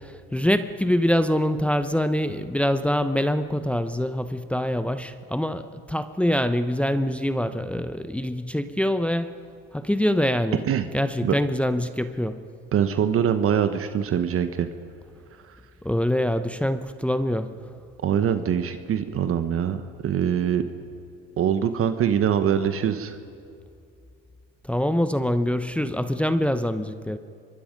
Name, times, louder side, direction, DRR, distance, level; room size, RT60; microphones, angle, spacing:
voice 1, 0.3-9.3 9.7-10.6 10.9-12.4 15.8-17.5 24.7-27.2, equal, 5° left, 10 dB, 0.8 m, -24 dB
voice 2, 12.7-14.7 18.0-19.8 20.0-20.6 21.4-23.2, right 9 dB, 45° right, 9 dB, 1.2 m, -23 dB
26.0 x 23.0 x 5.3 m, 2.4 s
supercardioid pair, 90°, 32 cm